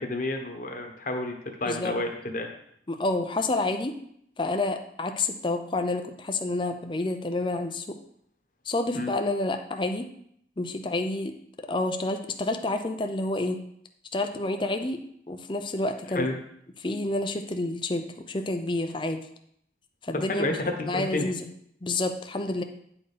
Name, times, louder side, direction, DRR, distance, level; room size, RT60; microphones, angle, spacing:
voice 1, 0.0-2.5 8.9-9.1 16.1-16.3 20.1-21.3, left 2 dB, 45° left, 3 dB, 1.2 m, -30 dB
voice 2, 2.9-4.0 4.4-8.0 8.7-10.1 10.6-11.3 11.7-13.6 14.1-15.0 15.3-16.3 16.8-19.2 20.0-20.5 20.9-21.5 21.8-22.6, left 2 dB, 25° left, 6 dB, 0.6 m, -29 dB
9.6 x 4.4 x 5.0 m, 0.71 s
head